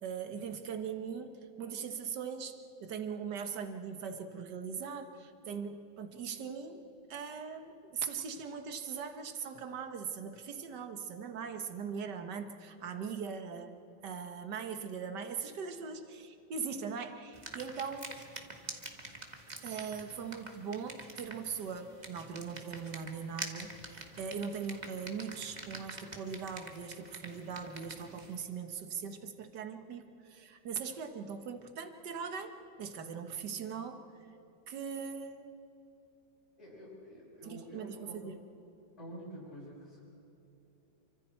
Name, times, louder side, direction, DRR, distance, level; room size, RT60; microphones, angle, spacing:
voice 1, 0.0-6.8 7.1-18.1 19.6-34.0 34.7-35.5 37.4-38.4, right 6 dB, 60° right, 7 dB, 1.9 m, -40 dB
sound 1, 17.3-28.4, right 2 dB, 25° right, 1.7 m, -47 dB
voice 2, 36.6-38.3 39.0-40.0, equal, 35° left, -10 dB, 6.9 m, -48 dB
29.0 x 25.0 x 4.5 m, 2.9 s
omnidirectional pair, 2.1 m